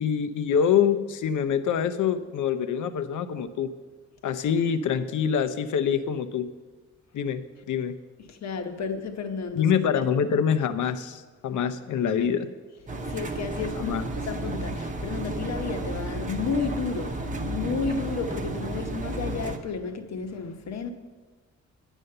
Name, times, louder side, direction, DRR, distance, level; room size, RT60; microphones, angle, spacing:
voice 1, 0.0-3.7 4.2-6.5 7.1-7.9 9.5-12.5 13.7-14.1, left 7 dB, 85° left, 11 dB, 0.7 m, -25 dB
voice 2, 8.3-9.7 10.0-10.1 13.1-13.9 14.3-20.9, left 5 dB, 65° left, 7 dB, 1.0 m, -32 dB
Engine, 12.9-19.6, right 2 dB, 25° right, 0.8 m, -32 dB
9.9 x 8.2 x 6.7 m, 1.4 s
wide cardioid pair, 170°, 30 cm